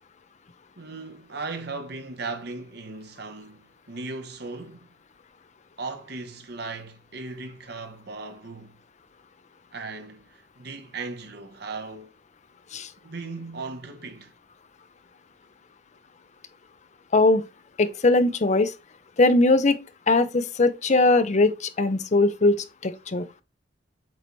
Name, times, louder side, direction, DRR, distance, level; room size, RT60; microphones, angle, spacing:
voice 1, 0.8-4.9 5.8-8.8 9.7-12.1 13.0-14.3, right 3 dB, 60° right, 1.1 m, -37 dB
voice 2, 17.8-18.7 19.2-19.8 20.1-23.3, left 2 dB, 40° left, 0.6 m, -20 dB
7.6 x 4.0 x 3.1 m
head